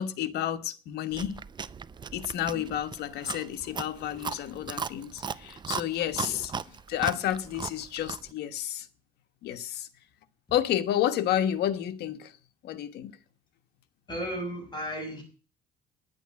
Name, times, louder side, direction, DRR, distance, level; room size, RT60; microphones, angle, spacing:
voice 1, 0.0-1.4 2.1-6.5 6.9-8.9 9.4-9.9 10.5-12.3 12.6-13.1, left 11 dB, 75° left, 1.3 m, -30 dB
Chewing mastication, 1.1-8.3, right 6 dB, 25° right, 0.5 m, -38 dB
voice 2, 14.1-15.2, equal, 25° left, 6.8 m, -35 dB
10.5 x 8.3 x 8.5 m
cardioid pair, 110°, 17 cm